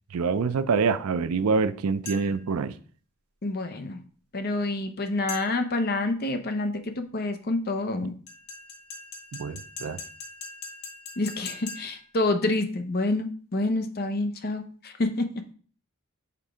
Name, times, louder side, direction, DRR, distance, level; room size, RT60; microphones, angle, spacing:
voice 1, 0.1-2.8 9.3-10.0, right 5 dB, 80° right, 0.4 m, -26 dB
sound 1, 2.1-2.5 5.3-5.8 8.3-12.1, left 4 dB, 85° left, 1.4 m, -41 dB
voice 2, 3.4-4.0 4.3-8.1 11.2-15.3, left 2 dB, 45° left, 0.7 m, -28 dB
5.9 x 3.5 x 4.9 m
head